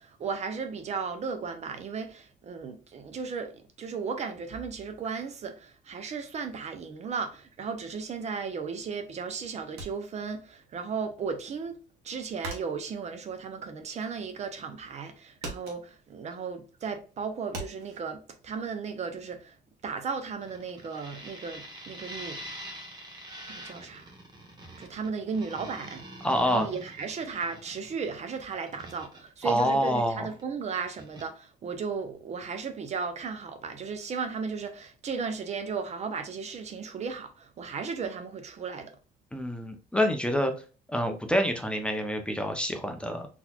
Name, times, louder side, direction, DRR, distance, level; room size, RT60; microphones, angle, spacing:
voice 1, 0.0-11.8 12.0-19.6 19.8-22.4 23.5-24.1 24.8-26.0 26.5-38.9, right 5 dB, 40° right, 0.6 m, -35 dB
sound 1, 9.8-10.8 11.1-14.4 14.7-15.1 15.4-18.0, right 2 dB, 85° right, 1.1 m, -42 dB
sound 2, 20.4-30.4 30.7-31.2, right 1 dB, 25° right, 1.0 m, -45 dB
voice 2, 26.2-26.7 29.4-30.3 39.3-40.5 40.9-43.3, equal, 5° left, 0.5 m, -27 dB
3.9 x 2.9 x 2.3 m
cardioid pair, 110°, 17 cm